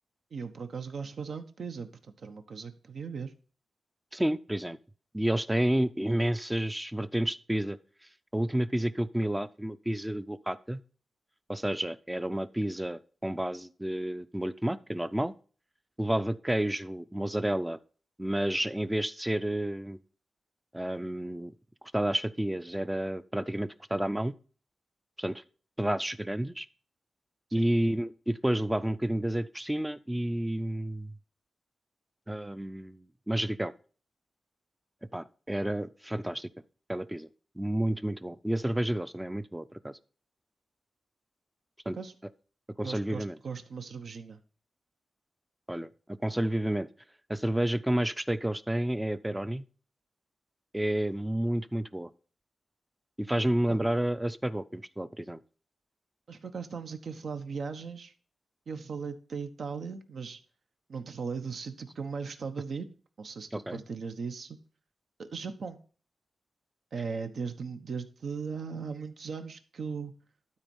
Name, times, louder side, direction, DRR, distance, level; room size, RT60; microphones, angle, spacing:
voice 1, 0.3-3.3 27.5-27.7 41.9-42.1 42.8-44.4 53.7-53.8 56.3-58.1 58.7-60.4 60.9-62.9 63.2-64.6 65.2-65.8 66.9-70.1, right 5 dB, 65° right, 8 dB, 1.1 m, -38 dB
voice 2, 4.1-4.8 5.1-7.8 8.3-10.8 11.5-15.3 16.0-17.8 18.2-20.0 20.7-21.5 21.9-24.3 25.2-25.4 25.8-26.7 27.5-31.1 32.3-33.7 35.1-36.5 36.9-37.3 37.6-40.0 41.9-42.0 42.8-43.4 45.7-45.9 46.2-46.9 47.3-49.6 50.7-52.1 53.2-55.4 63.5-63.8, right 1 dB, 10° right, 14 dB, 0.5 m, -30 dB
12.5 x 4.4 x 5.4 m, 0.40 s
wide cardioid pair, 105°, 0 cm